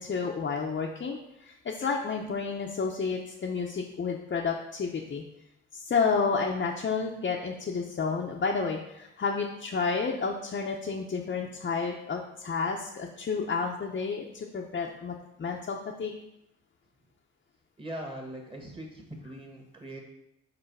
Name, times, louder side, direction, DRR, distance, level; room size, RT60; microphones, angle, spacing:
voice 1, 0.0-5.2 5.7-16.1, left 5 dB, 35° left, -1 dB, 0.8 m, -31 dB
voice 2, 17.8-20.0, right 1 dB, 15° right, 1 dB, 1.7 m, -41 dB
5.7 x 3.9 x 5.4 m, 0.86 s
cardioid pair, 90°, 30 cm